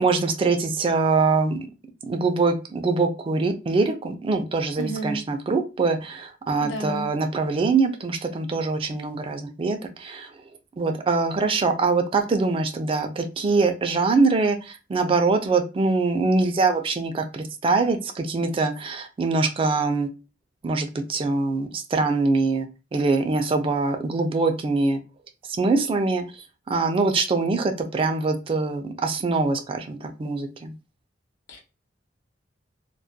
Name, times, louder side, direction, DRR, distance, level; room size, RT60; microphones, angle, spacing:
voice 1, 0.0-1.7 2.0-10.3 10.8-20.1 20.6-25.0 25.6-30.7, right 3 dB, 30° right, 0.3 m, -23 dB
voice 2, 4.8-5.2 6.6-7.1 31.5-31.6, right 1 dB, 85° left, 0.7 m, -31 dB
2.3 x 2.1 x 2.5 m
head